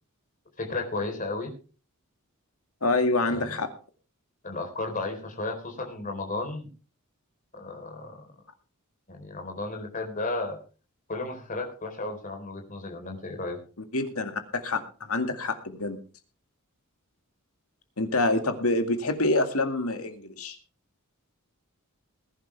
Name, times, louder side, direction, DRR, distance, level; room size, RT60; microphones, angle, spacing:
voice 1, 0.6-1.5 3.3-3.6 4.4-6.7 7.5-8.2 9.1-10.6 11.1-13.6, left 2 dB, 40° left, 3 dB, 4.1 m, -33 dB
voice 2, 2.8-3.7 13.9-16.0 18.0-20.6, left 2 dB, 75° left, 7 dB, 2.1 m, -26 dB
20.0 x 11.0 x 3.4 m, 0.36 s
head